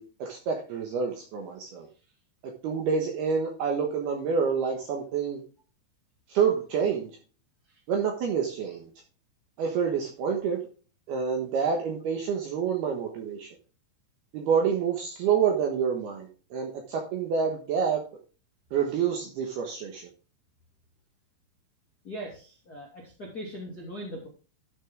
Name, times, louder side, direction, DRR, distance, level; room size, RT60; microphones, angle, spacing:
voice 1, 0.0-1.9 2.6-5.4 6.3-7.1 7.9-8.8 9.6-10.6 11.1-13.5 14.3-18.0 18.7-20.1, right 6 dB, 70° right, 2 dB, 2.6 m, -28 dB
voice 2, 22.0-24.3, equal, 45° left, -3 dB, 1.2 m, -40 dB
12.0 x 6.5 x 3.5 m, 0.37 s
omnidirectional pair, 6.0 m